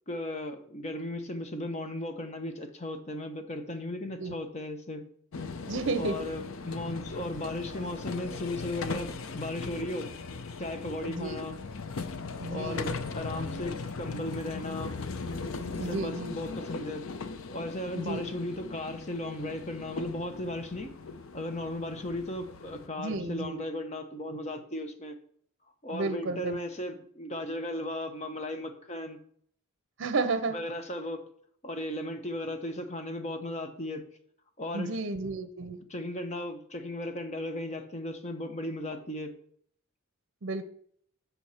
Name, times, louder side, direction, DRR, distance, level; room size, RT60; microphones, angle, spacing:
voice 1, 0.1-5.0 6.0-10.1 10.6-11.6 12.5-14.9 15.7-17.1 17.5-20.9 21.3-25.2 25.8-29.2 30.5-31.2 31.6-34.0 34.6-35.0 35.9-39.3, left 1 dB, 30° left, 7 dB, 0.9 m, -36 dB
sound 1, 5.3-22.9, left 4 dB, 70° left, 0.6 m, -39 dB
voice 2, 5.7-6.2 11.1-11.5 12.4-12.9 15.8-16.4 17.9-18.3 23.0-23.6 25.9-26.6 30.0-30.6 34.7-35.8 40.4-40.6, right 3 dB, 60° right, 10 dB, 0.6 m, -32 dB
7.0 x 6.4 x 4.2 m, 0.63 s
head